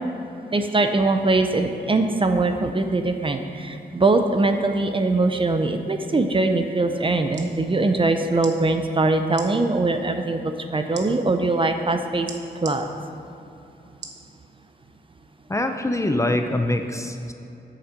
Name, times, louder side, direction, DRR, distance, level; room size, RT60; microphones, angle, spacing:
voice 1, 0.5-12.3 12.6-12.9, right 2 dB, 30° right, 6 dB, 0.6 m, -22 dB
sound 1, 7.3-7.5 8.4-8.6 9.3-9.5 10.9-11.1 12.3-12.8 14.0-14.2 14.8-14.9, right 5 dB, 90° right, 1.0 m, -37 dB
voice 2, 15.5-17.3, left 1 dB, 15° left, 6 dB, 0.6 m, -24 dB
8.8 x 7.2 x 6.4 m, 2.8 s
wide cardioid pair, 120°, 18 cm